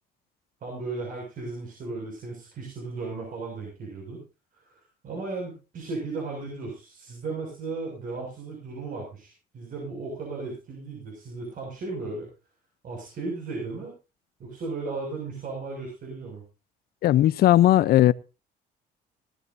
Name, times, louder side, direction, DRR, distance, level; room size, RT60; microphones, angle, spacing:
voice 1, 0.6-4.2 4.5-12.3 12.8-13.9 14.4-16.4, right 3 dB, 55° right, 6.6 m, -35 dB
voice 2, 17.0-18.1, left 13 dB, 65° left, 0.8 m, -17 dB
19.5 x 13.5 x 2.8 m
cardioid pair, 110°, 17 cm